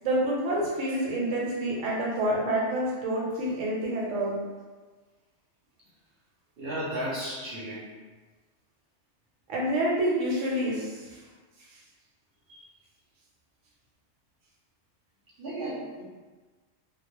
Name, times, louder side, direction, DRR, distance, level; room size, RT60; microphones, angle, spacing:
voice 1, 0.0-4.3 9.5-11.2, right 1 dB, 80° right, -4 dB, 1.0 m, -28 dB
voice 2, 6.6-7.9 12.5-12.7 15.4-16.0, right 1 dB, 60° right, -8 dB, 0.8 m, -34 dB
2.3 x 2.0 x 3.0 m, 1.3 s
omnidirectional pair, 1.3 m